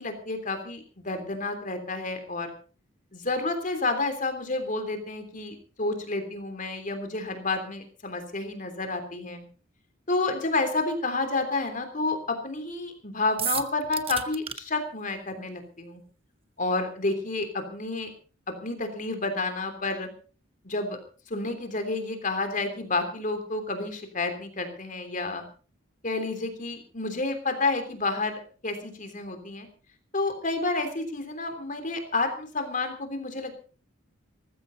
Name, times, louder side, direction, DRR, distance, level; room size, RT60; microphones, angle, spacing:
voice 1, 0.0-2.5 3.1-9.4 10.1-16.0 16.6-18.1 18.6-20.1 20.6-21.0 21.3-25.4 26.0-29.7 30.1-33.5, left 3 dB, 40° left, 7 dB, 3.3 m, -30 dB
sound 1, 13.4-14.6, right 9 dB, 30° right, 1.1 m, -31 dB
19.5 x 15.0 x 4.1 m, 0.38 s
head